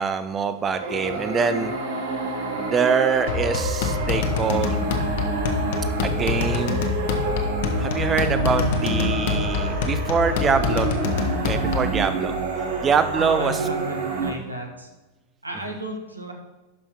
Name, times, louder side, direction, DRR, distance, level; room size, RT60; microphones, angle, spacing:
voice 1, 0.0-1.7 2.5-4.9 6.0-6.9 7.8-11.2 11.4-12.4 12.8-13.6, right 6 dB, 20° right, 11 dB, 0.3 m, -24 dB
sound 1, 0.6-14.3, right 3 dB, 55° right, 1.2 m, -28 dB
sound 2, 3.3-12.0, left 5 dB, 55° left, 0.9 m, -26 dB
voice 2, 13.1-14.9 15.4-16.3, right 1 dB, 80° right, 2 dB, 1.1 m, -33 dB
11.0 x 5.5 x 3.0 m, 1.1 s
figure-of-eight pair, 90°, 0 cm